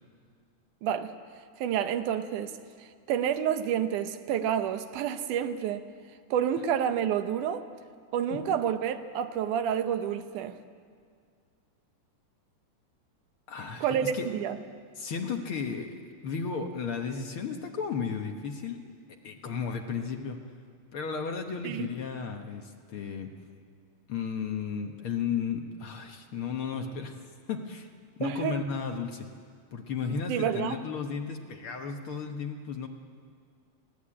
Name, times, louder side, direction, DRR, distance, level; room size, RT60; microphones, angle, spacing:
voice 1, 0.8-1.1 1.6-5.9 6.3-7.7 8.1-10.6 13.8-14.6 21.6-21.9 28.2-28.6 30.3-30.8, right 9 dB, 80° right, 2.4 m, -29 dB
voice 2, 13.5-14.3 15.0-18.8 19.2-20.4 20.9-23.3 24.1-27.1 27.5-27.9 28.2-29.3 29.7-32.9, left 6 dB, 60° left, 1.5 m, -34 dB
21.5 x 16.5 x 8.7 m
omnidirectional pair, 3.6 m